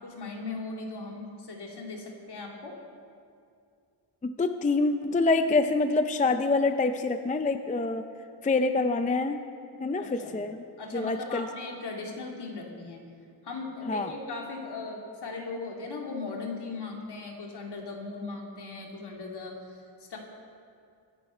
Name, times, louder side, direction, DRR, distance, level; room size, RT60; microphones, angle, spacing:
voice 1, 0.0-2.7 10.0-10.4 10.8-13.0 13.4-19.8 20.1-20.2, left 3 dB, 65° left, 0 dB, 2.6 m, -38 dB
voice 2, 4.2-8.1 8.4-9.4 9.8-10.6 10.9-11.5 13.9-14.1, left 3 dB, 20° left, 8 dB, 0.4 m, -26 dB
23.5 x 10.5 x 4.4 m, 2.3 s
wide cardioid pair, 145°, 44 cm